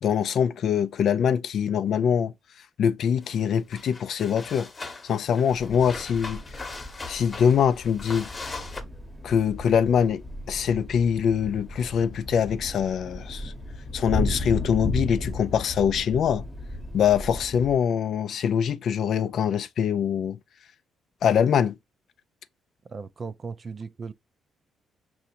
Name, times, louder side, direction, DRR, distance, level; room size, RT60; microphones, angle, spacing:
voice 1, 0.0-2.3 2.8-6.4 7.1-8.3 9.2-13.5 13.9-16.4 16.9-20.4 21.2-21.8, left 8 dB, 65° left, 0.3 m, -24 dB
sound 1, 3.2-3.4 3.7-8.8, left 3 dB, 30° left, 0.9 m, -40 dB
sound 2, 5.5-17.7, left 1 dB, ahead, 0.9 m, -35 dB
voice 2, 22.9-24.1, right 5 dB, 40° right, 0.4 m, -37 dB
5.5 x 2.6 x 2.8 m
cardioid pair, 90°, 0 cm